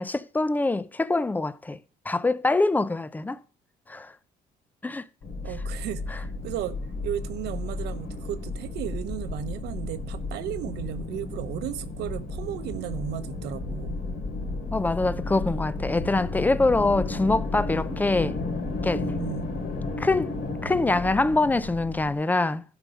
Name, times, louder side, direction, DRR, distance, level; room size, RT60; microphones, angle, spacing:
voice 1, 0.0-1.8 2.1-3.4 3.9-4.1 4.8-5.1 6.1-6.2 14.7-18.4 18.8-19.0 20.0-20.3 20.6-22.6, left 2 dB, 10° left, 0.5 m, -24 dB
sound 1, 5.2-22.1, left 3 dB, 65° left, 2.9 m, -33 dB
voice 2, 5.4-6.8 7.0-14.0 18.9-19.5, right 11 dB, 80° right, 1.0 m, -35 dB
12.5 x 5.4 x 5.1 m
cardioid pair, 110°, 17 cm